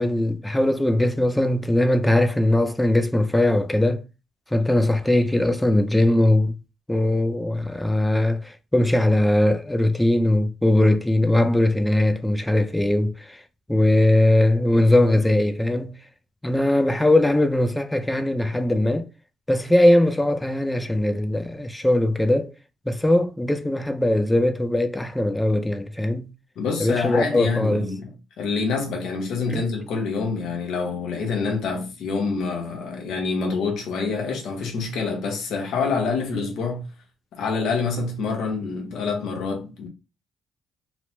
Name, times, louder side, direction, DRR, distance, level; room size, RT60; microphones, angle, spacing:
voice 1, 0.0-4.0 4.5-6.5 6.9-13.4 13.7-16.0 16.4-19.1 19.5-22.5 22.9-26.3 26.8-27.9 29.5-29.6, left 1 dB, 10° left, 0.4 m, -20 dB
voice 2, 26.6-36.9 37.3-39.9, left 4 dB, 80° left, 0.9 m, -26 dB
3.1 x 2.0 x 2.8 m
cardioid pair, 90°, 0 cm